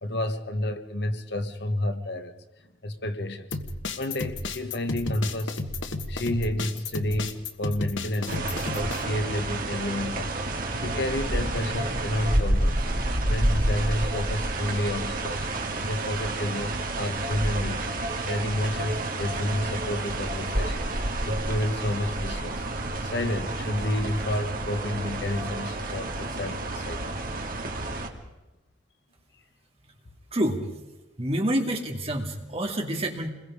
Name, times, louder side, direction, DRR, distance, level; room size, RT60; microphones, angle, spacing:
voice 1, 0.0-2.3 2.8-3.5 4.0-5.6 6.1-10.4 10.8-12.8 13.3-15.5 15.8-17.8 18.3-22.6 23.0-27.1, left 1 dB, 60° left, 1.3 m, -30 dB
sound 1, 3.5-9.0, left 2 dB, 85° left, 1.5 m, -32 dB
sound 2, 8.3-28.1, right 1 dB, 50° right, 2.2 m, -29 dB
voice 2, 30.3-30.6 31.2-33.3, right 1 dB, 30° right, 2.3 m, -27 dB
28.0 x 21.5 x 5.0 m
head